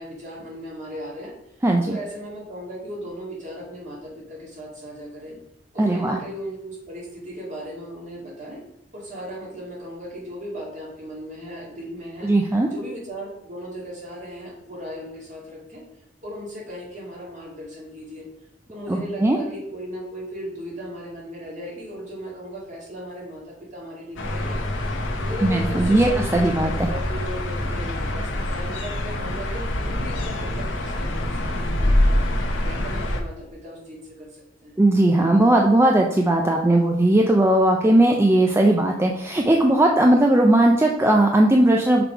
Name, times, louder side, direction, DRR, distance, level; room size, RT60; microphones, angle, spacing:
voice 1, 0.0-1.3 1.9-5.4 5.7-8.6 8.9-12.3 12.7-15.8 16.2-18.3 18.7-24.6 25.2-32.2 32.6-34.8, equal, 40° right, -4 dB, 2.0 m, -37 dB
voice 2, 1.6-2.0 5.8-6.2 12.2-12.7 18.9-19.4 25.4-26.9 34.8-42.0, right 1 dB, 15° right, 1 dB, 0.4 m, -18 dB
sound 1, 24.2-33.2, left 1 dB, 90° left, 1.0 m, -25 dB
5.9 x 3.4 x 4.6 m, 0.79 s
head